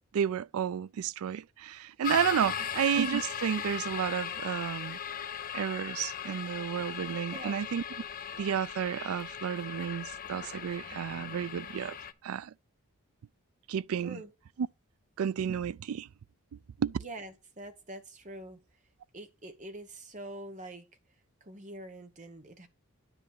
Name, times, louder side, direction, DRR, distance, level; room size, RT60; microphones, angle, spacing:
voice 1, 0.1-5.0 5.5-7.8 8.4-12.0 12.2-12.5 13.7-14.2 15.2-16.1 16.8-17.0, right 8 dB, 75° right, 0.3 m, -31 dB
sound 1, 2.0-12.1, left 9 dB, 40° left, 0.6 m, -38 dB
voice 2, 7.3-7.6 14.0-14.3 16.9-18.6 19.1-20.9 21.4-22.7, right 1 dB, 35° right, 1.3 m, -45 dB
9.9 x 3.8 x 6.6 m
head